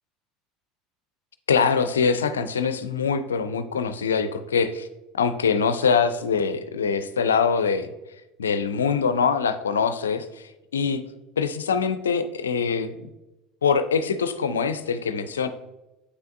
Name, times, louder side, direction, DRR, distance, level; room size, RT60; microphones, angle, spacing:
voice 1, 1.5-4.9 5.1-7.9 8.4-10.3 10.7-11.0 11.4-12.9 13.6-15.5, left 6 dB, 75° left, 12 dB, 0.4 m, -23 dB
8.0 x 5.6 x 2.5 m, 1.0 s
figure-of-eight pair, 70°, 0 cm